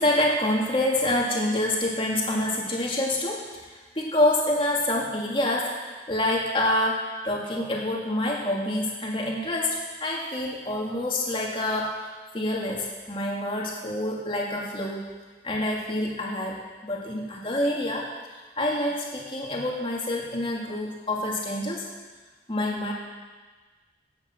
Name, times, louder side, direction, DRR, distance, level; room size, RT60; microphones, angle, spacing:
voice 1, 0.0-12.1 12.3-15.1 15.4-16.5 16.8-18.1 18.6-21.8 22.5-22.9, left 1 dB, 30° left, -2 dB, 2.4 m, -27 dB
15.5 x 8.7 x 6.1 m, 1.3 s
head